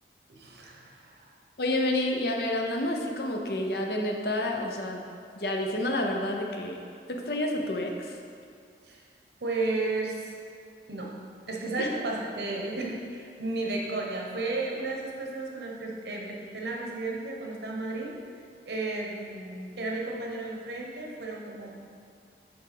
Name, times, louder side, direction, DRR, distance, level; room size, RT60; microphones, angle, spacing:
voice 1, 0.3-1.2 8.8-9.0 9.4-10.3 10.9-11.2 11.5-18.1 18.6-21.7, right 2 dB, 75° right, -1 dB, 1.0 m, -33 dB
voice 2, 1.6-5.0 5.4-6.8 7.1-8.1 11.8-11.9, left 1 dB, 65° left, 2 dB, 0.7 m, -29 dB
7.9 x 3.4 x 5.2 m, 2.3 s
head